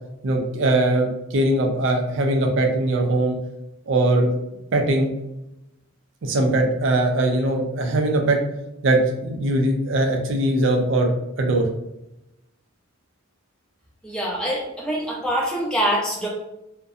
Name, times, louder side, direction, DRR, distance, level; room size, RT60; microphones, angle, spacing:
voice 1, 0.2-3.4 3.9-4.3 4.7-5.1 6.2-8.4 8.8-11.7, right 1 dB, 60° right, 3 dB, 0.4 m, -21 dB
voice 2, 14.0-16.3, equal, 5° left, -4 dB, 0.5 m, -24 dB
2.6 x 2.1 x 2.3 m, 0.90 s
head